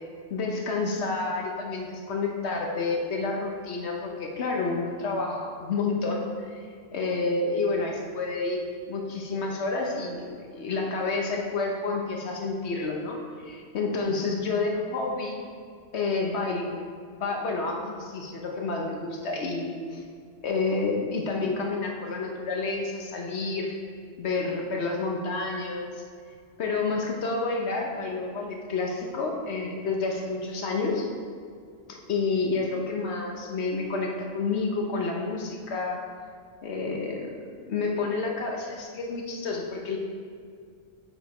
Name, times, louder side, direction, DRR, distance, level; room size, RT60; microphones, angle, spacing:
voice 1, 0.3-6.5 6.9-15.4 15.9-16.8 17.1-20.0 20.4-23.7 24.2-25.9 26.6-31.0 31.9-36.0 36.6-37.3 37.7-40.0, left 3 dB, 65° left, 0 dB, 1.1 m, -29 dB
5.6 x 5.0 x 4.5 m, 2.2 s
omnidirectional pair, 1.2 m